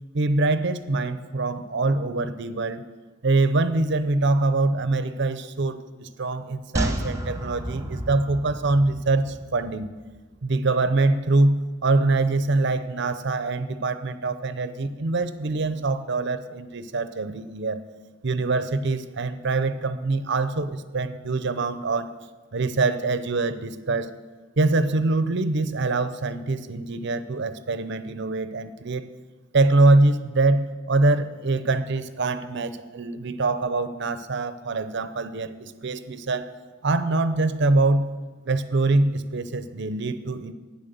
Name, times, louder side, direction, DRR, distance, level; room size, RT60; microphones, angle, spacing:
voice 1, 0.1-2.8 3.2-9.9 10.4-17.8 18.2-22.1 22.5-24.1 24.6-29.1 29.5-36.5 36.8-38.1 38.4-40.5, right 2 dB, 60° right, 12 dB, 0.7 m, -24 dB
sound 1, 6.8-10.2 10.5-10.6, right 1 dB, 15° right, 1.2 m, -31 dB
12.5 x 9.7 x 6.8 m, 1.3 s
head